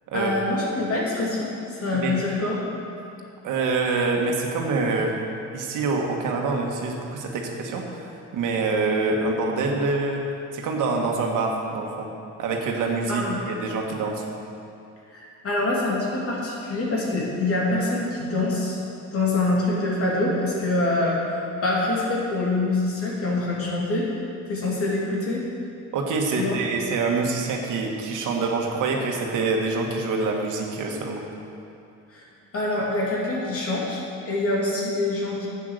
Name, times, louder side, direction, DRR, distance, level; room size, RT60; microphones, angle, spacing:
voice 1, 0.1-1.5 1.8-2.6 13.1-13.4 15.1-18.8 19.1-24.1 24.5-25.4 26.3-26.6 32.1-32.2 32.5-35.5, left 2 dB, 45° left, -4 dB, 3.0 m, -25 dB
voice 2, 3.4-5.2 5.5-10.2 10.5-12.1 12.4-14.3 25.9-31.3, right 3 dB, 85° right, 1 dB, 1.7 m, -26 dB
10.5 x 8.5 x 6.6 m, 2.7 s
cardioid pair, 125°, 31 cm